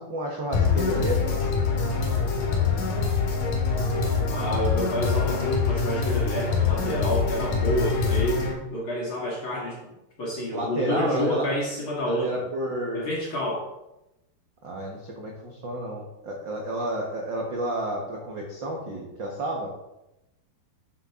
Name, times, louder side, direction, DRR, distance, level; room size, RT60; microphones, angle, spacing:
voice 1, 0.0-1.7 10.5-11.5 12.0-13.1 14.6-19.7, right 1 dB, 60° right, 0 dB, 1.2 m, -31 dB
sound 1, 0.5-8.5, left 5 dB, 90° left, 3.3 m, -24 dB
voice 2, 4.3-9.9 10.2-12.4 12.9-13.7, equal, 45° left, -3 dB, 2.4 m, -29 dB
10.5 x 7.4 x 3.7 m, 0.92 s
omnidirectional pair, 3.9 m